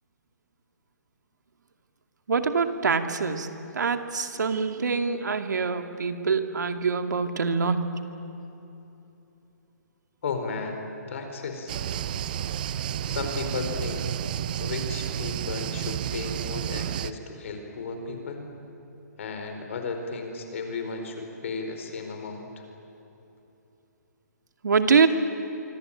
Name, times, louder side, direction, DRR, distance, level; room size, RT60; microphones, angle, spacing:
voice 1, 2.3-7.8 24.6-25.1, right 5 dB, 85° right, 7 dB, 2.3 m, -24 dB
voice 2, 10.2-10.8 11.1-11.8 12.7-12.8 13.1-14.1 14.6-18.4 19.2-22.4, left 4 dB, 45° left, 5 dB, 4.5 m, -34 dB
sound 1, 11.7-17.1, right 10 dB, 30° right, 0.6 m, -31 dB
26.0 x 25.0 x 9.0 m, 3.0 s
hypercardioid pair, 170°, 9 cm